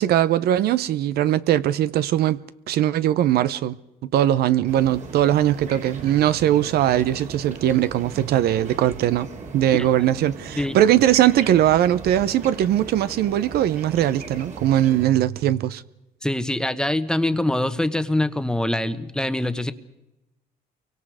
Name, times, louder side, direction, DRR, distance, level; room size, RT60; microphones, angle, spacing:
voice 1, 0.0-2.4 2.7-3.8 4.0-9.3 9.5-15.8, right 12 dB, 70° right, 0.7 m, -20 dB
sound 1, 4.7-15.1, right 3 dB, 45° right, 2.8 m, -38 dB
voice 2, 16.2-19.7, left 1 dB, 5° left, 1.1 m, -24 dB
29.5 x 24.0 x 4.9 m
cardioid pair, 110°, 17 cm